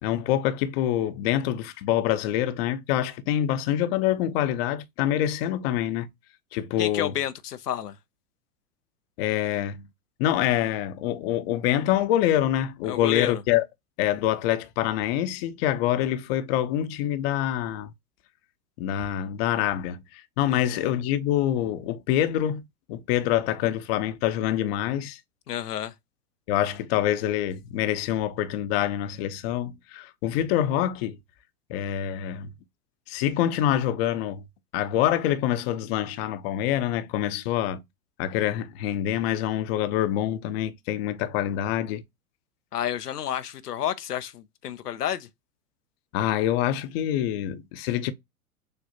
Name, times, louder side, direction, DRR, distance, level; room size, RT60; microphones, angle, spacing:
voice 1, 0.0-6.1 6.5-7.1 9.2-9.8 10.2-13.6 14.0-17.9 18.8-25.2 26.5-31.2 31.7-32.5 33.1-34.4 34.7-37.8 38.2-42.0 46.1-48.1, left 12 dB, 40° left, 0.6 m, -26 dB
voice 2, 6.8-7.9 12.8-13.4 20.7-20.8 25.5-25.9 42.7-45.3, left 10 dB, 85° left, 0.6 m, -30 dB
6.6 x 2.4 x 2.7 m
hypercardioid pair, 100°, 45 cm